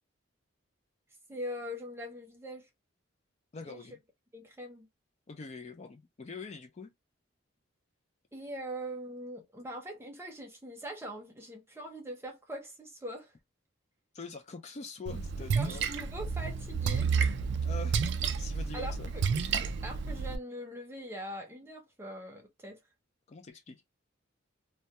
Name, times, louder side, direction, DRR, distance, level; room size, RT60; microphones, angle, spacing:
voice 1, 1.3-2.7 3.7-3.9 4.3-4.9 8.3-13.3 15.5-17.1 18.7-19.2 19.8-22.8, equal, 10° right, 0.6 m, -42 dB
voice 2, 3.5-4.0 5.3-6.9 14.1-15.9 17.6-18.1 18.4-19.1 23.3-23.8, left 4 dB, 35° left, 0.3 m, -44 dB
Splash splatter, 15.1-20.4, right 5 dB, 55° right, 0.3 m, -31 dB
2.2 x 2.2 x 2.7 m
head